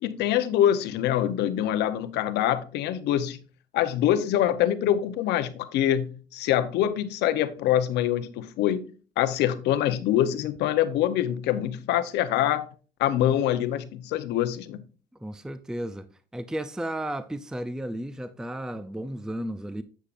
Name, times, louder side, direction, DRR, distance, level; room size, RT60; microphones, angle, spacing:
voice 1, 0.0-3.4 3.7-8.9 9.2-12.7 13.0-14.8, left 11 dB, 85° left, 0.8 m, -25 dB
voice 2, 15.2-19.8, right 1 dB, 5° right, 0.5 m, -34 dB
10.0 x 7.4 x 2.5 m
cardioid pair, 110°, 17 cm